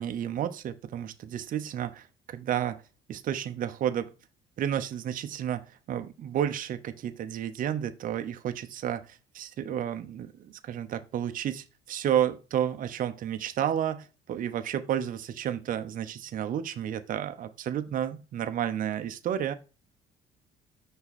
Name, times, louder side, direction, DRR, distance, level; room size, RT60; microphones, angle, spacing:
voice 1, 0.0-2.8 3.1-4.1 4.6-19.5, right 10 dB, 55° right, 9 dB, 0.7 m, -31 dB
5.7 x 4.2 x 4.1 m, 0.32 s
cardioid pair, 110°, 17 cm